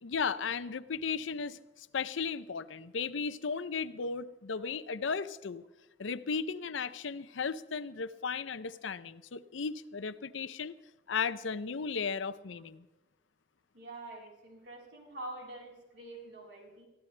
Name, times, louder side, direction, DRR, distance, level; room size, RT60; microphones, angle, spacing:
voice 1, 0.0-5.6 6.0-10.8 11.1-12.9, left 5 dB, 80° left, 14 dB, 0.6 m, -35 dB
voice 2, 13.7-16.9, right 2 dB, 65° right, -1 dB, 4.1 m, -46 dB
22.5 x 14.0 x 3.3 m, 1.0 s
head